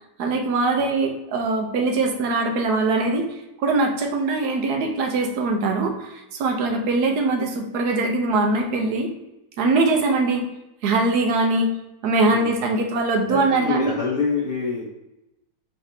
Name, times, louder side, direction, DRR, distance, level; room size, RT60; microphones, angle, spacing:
voice 1, 0.2-3.3 3.6-9.1 9.6-10.4 10.8-11.7 12.0-14.0, right 3 dB, 75° right, 3 dB, 1.2 m, -22 dB
voice 2, 13.3-14.9, left 4 dB, 40° left, -8 dB, 0.8 m, -26 dB
4.0 x 3.2 x 2.7 m, 0.93 s
omnidirectional pair, 1.7 m